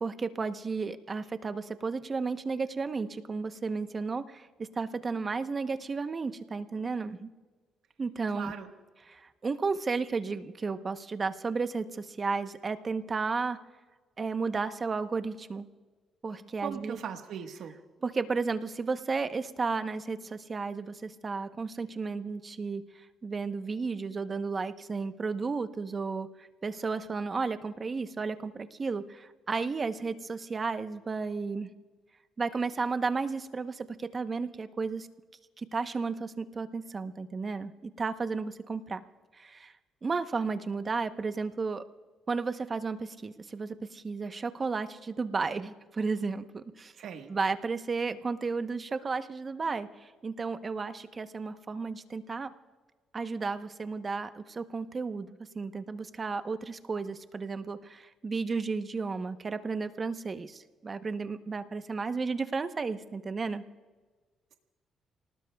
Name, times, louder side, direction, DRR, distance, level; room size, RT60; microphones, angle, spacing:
voice 1, 0.0-7.3 8.0-8.5 9.1-13.6 14.2-15.7 16.2-17.0 18.0-22.8 23.2-31.7 32.4-35.1 35.6-39.0 39.3-39.7 40.0-41.8 42.3-46.9 47.3-52.5 53.1-55.3 55.5-63.6, right 4 dB, 35° right, 10 dB, 0.9 m, -33 dB
voice 2, 8.3-8.7 16.6-17.7 47.0-47.3, right 8 dB, 75° right, 5 dB, 1.4 m, -39 dB
29.5 x 19.0 x 2.4 m, 1.3 s
cardioid pair, 90°, 0 cm